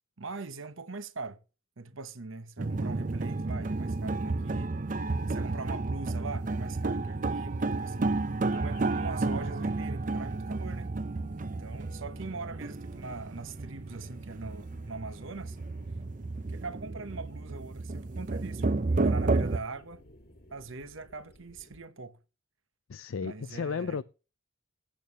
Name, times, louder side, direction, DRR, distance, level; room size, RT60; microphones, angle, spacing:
voice 1, 0.2-1.4 1.8-4.8 5.3-8.2 8.5-10.9 11.4-15.6 16.5-20.0 20.5-22.2 23.2-24.0, right 3 dB, 65° right, 1.0 m, -42 dB
sound 1, 2.6-19.6, right 3 dB, 40° right, 0.6 m, -32 dB
sound 2, 6.3-21.8, left 1 dB, 50° left, 1.7 m, -58 dB
voice 2, 22.9-24.0, left 5 dB, 70° left, 0.4 m, -33 dB
18.0 x 8.5 x 3.0 m
head